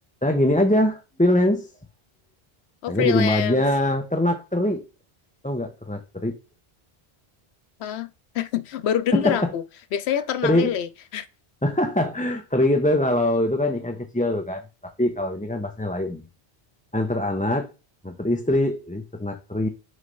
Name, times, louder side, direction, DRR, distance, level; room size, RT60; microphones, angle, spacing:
voice 1, 0.2-1.7 2.9-4.9 5.4-6.4 9.1-9.5 10.4-10.7 11.6-16.2 16.9-17.7 18.0-19.7, left 1 dB, 10° left, 0.5 m, -23 dB
voice 2, 2.8-3.6 7.8-8.1 8.3-9.6 9.9-11.3, left 10 dB, 90° left, 0.9 m, -26 dB
6.4 x 3.2 x 5.4 m
omnidirectional pair, 1.1 m